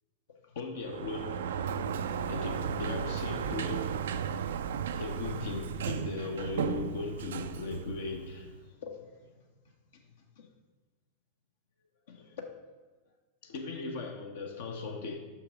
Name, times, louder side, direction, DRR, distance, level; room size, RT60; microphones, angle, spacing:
voice 1, 0.5-1.4 2.3-3.9 4.9-9.3 10.4-10.5 12.1-12.5 13.4-15.2, left 4 dB, 60° left, 0.8 m, -38 dB
Sliding door, 0.8-8.6, right 7 dB, 60° right, 0.3 m, -35 dB
6.0 x 5.8 x 4.9 m
figure-of-eight pair, 90°, 0 cm